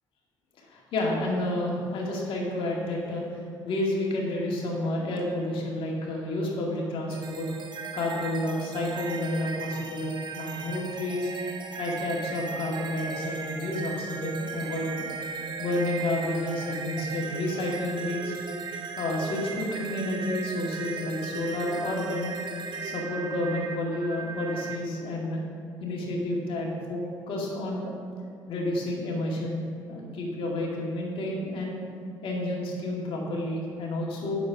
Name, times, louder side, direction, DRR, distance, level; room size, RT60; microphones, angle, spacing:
voice 1, 0.6-7.5 7.9-11.3 11.8-15.1 15.6-18.3 19.0-22.4 22.8-25.4 25.8-27.9 28.5-31.8 32.2-34.4, left 1 dB, 65° left, -2 dB, 2.3 m, -30 dB
sound 1, 7.1-24.8, right 5 dB, 50° right, 0.9 m, -37 dB
8.4 x 7.0 x 5.0 m, 2.2 s
supercardioid pair, 60°, 10 cm